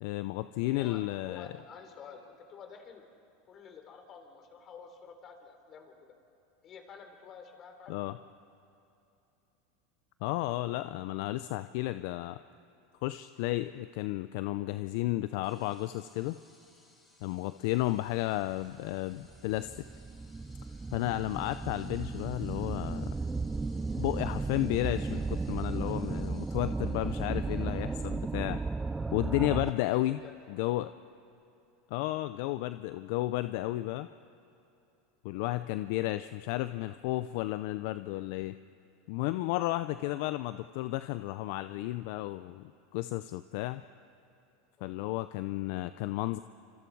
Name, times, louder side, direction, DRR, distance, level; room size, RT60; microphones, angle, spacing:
voice 1, 0.0-1.5 7.9-8.2 10.2-12.4 13.0-16.4 17.2-19.8 20.9-23.1 24.0-28.6 29.1-30.2 30.5-30.9 31.9-34.1 35.2-38.6 39.1-43.8 44.8-46.4, left 17 dB, 65° left, 12 dB, 0.5 m, -33 dB
voice 2, 0.6-3.1 3.5-6.1 6.6-8.0 29.8-30.3 35.3-35.4 44.8-45.0, left 6 dB, 40° left, 5 dB, 3.5 m, -50 dB
sound 1, 15.4-29.3, left 2 dB, 20° left, 6.6 m, -63 dB
sound 2, 18.5-18.6 19.3-30.0, right 3 dB, 15° right, 0.4 m, -35 dB
27.0 x 25.5 x 4.7 m, 2.9 s
hypercardioid pair, 105°, 0 cm